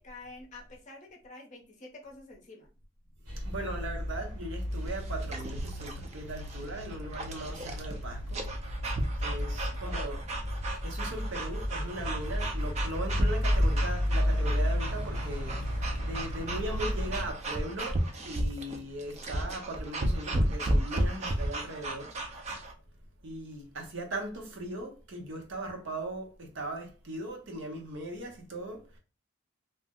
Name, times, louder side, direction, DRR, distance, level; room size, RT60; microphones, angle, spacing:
voice 1, 0.0-2.7 9.0-10.0, left 2 dB, 35° left, 0.7 m, -49 dB
sound 1, 3.3-17.3, equal, 80° right, 1.6 m, -33 dB
voice 2, 3.4-8.5 9.2-10.2 10.8-22.7 23.2-29.0, right 1 dB, 55° right, 0.7 m, -39 dB
sound 2, 4.7-22.7, right 1 dB, 30° right, 0.3 m, -34 dB
2.7 x 2.0 x 3.5 m
head